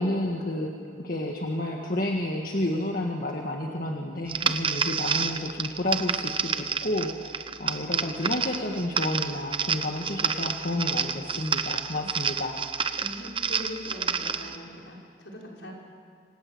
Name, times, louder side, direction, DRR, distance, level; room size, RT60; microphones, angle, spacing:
voice 1, 0.0-12.6, left 1 dB, 50° left, 1 dB, 1.9 m, -30 dB
sound 1, 4.3-14.6, right 6 dB, 25° right, 0.9 m, -29 dB
voice 2, 13.0-15.7, left 1 dB, 75° left, -2 dB, 5.7 m, -41 dB
27.0 x 26.5 x 8.1 m, 2.2 s
head